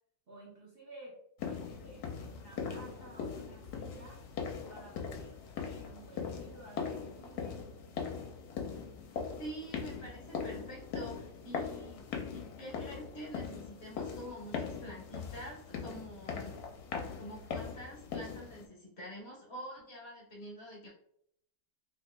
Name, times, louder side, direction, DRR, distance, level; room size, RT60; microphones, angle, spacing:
voice 1, 0.3-1.2 1.5-4.3 4.7-7.6, right 2 dB, 45° right, -5 dB, 0.8 m, -53 dB
sound 1, 1.4-18.7, left 6 dB, 80° left, 1.1 m, -41 dB
voice 2, 9.4-12.0 12.3-16.6 17.2-20.9, equal, 50° left, -3 dB, 1.0 m, -46 dB
2.9 x 2.8 x 3.2 m, 0.70 s
omnidirectional pair, 1.7 m